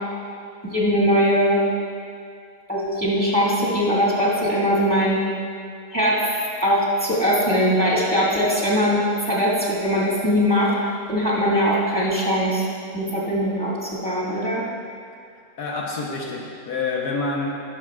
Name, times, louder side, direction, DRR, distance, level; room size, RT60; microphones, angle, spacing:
voice 1, 0.7-1.6 2.7-5.2 5.9-6.2 6.6-10.7 11.1-12.6 12.9-14.6, equal, 5° left, -8 dB, 2.1 m, -21 dB
voice 2, 15.6-17.6, left 3 dB, 75° left, -2 dB, 1.6 m, -27 dB
19.0 x 7.2 x 2.4 m, 2.4 s
omnidirectional pair, 1.7 m